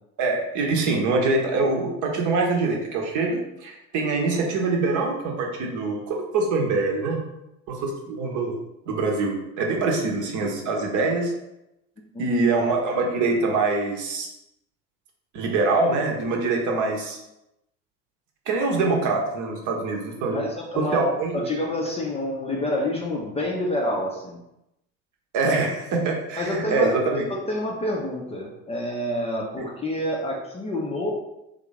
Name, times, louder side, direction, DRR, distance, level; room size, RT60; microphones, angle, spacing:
voice 1, 0.2-7.2 7.7-8.5 8.9-11.3 12.2-14.3 15.3-17.2 18.5-20.4 20.8-21.4 25.3-27.3 29.6-29.7, right 3 dB, 40° right, 1 dB, 0.9 m, -24 dB
voice 2, 20.3-24.4 26.4-31.1, left 1 dB, 15° left, -2 dB, 0.6 m, -28 dB
3.1 x 2.5 x 3.9 m, 0.89 s
figure-of-eight pair, 70°, 44 cm